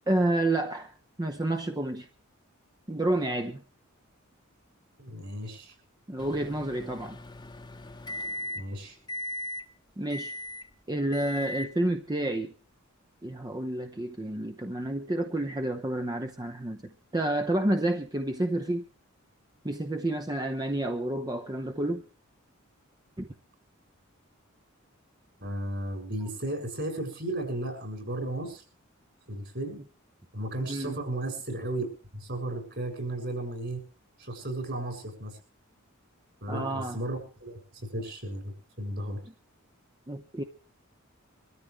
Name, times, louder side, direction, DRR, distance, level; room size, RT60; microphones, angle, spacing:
voice 1, 0.1-2.1 2.9-3.6 6.1-7.2 10.0-10.3 10.9-12.5 13.2-18.8 19.6-22.0 23.2-23.3 30.7-31.0 36.5-37.0 40.1-40.4, right 1 dB, 20° right, 0.8 m, -30 dB
voice 2, 5.0-5.7 8.5-9.0 25.4-28.6 29.3-29.8 30.3-33.8 34.2-35.4 36.4-39.2, right 1 dB, 55° right, 7.0 m, -34 dB
Microwave oven, 6.2-8.8 9.1-9.6 10.1-10.7 11.1-11.7, left 1 dB, 20° left, 1.0 m, -38 dB
24.0 x 13.5 x 3.3 m
head